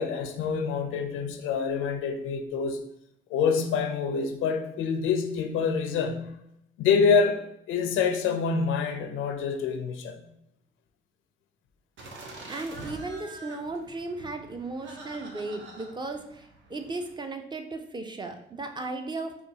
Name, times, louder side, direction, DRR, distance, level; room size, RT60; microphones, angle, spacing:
voice 1, 0.0-2.8 3.3-6.3 6.8-7.4 7.7-10.2, left 5 dB, 90° left, 6 dB, 0.5 m, -26 dB
sound 1, 12.0-17.1, right 2 dB, 70° right, 0.7 m, -45 dB
voice 2, 12.5-19.5, right 2 dB, 20° right, 5 dB, 0.4 m, -36 dB
4.3 x 2.3 x 2.7 m, 0.77 s
cardioid pair, 90°, 20 cm